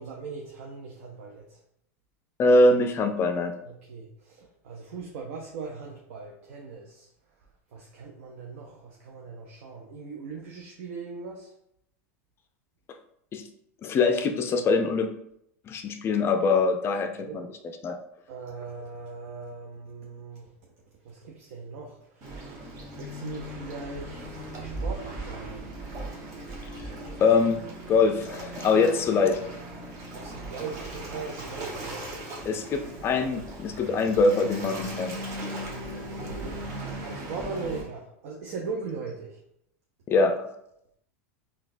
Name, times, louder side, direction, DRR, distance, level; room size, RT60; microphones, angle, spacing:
voice 1, 0.0-1.6 3.7-7.1 7.7-11.5 17.2-17.4 18.3-20.5 21.0-25.6 30.1-32.1 35.9-36.6 37.0-39.4, right 4 dB, 65° right, 0 dB, 0.5 m, -39 dB
voice 2, 2.4-3.5 13.3-13.4 13.8-15.1 15.7-17.5 17.8-18.0 27.2-27.6 27.9-29.4 32.4-35.1 40.1-40.4, left 3 dB, 30° left, 6 dB, 0.4 m, -23 dB
Waves surf, 22.2-37.8, right 1 dB, 40° right, 1.0 m, -38 dB
3.8 x 2.3 x 2.5 m, 0.76 s
hypercardioid pair, 105°, 8 cm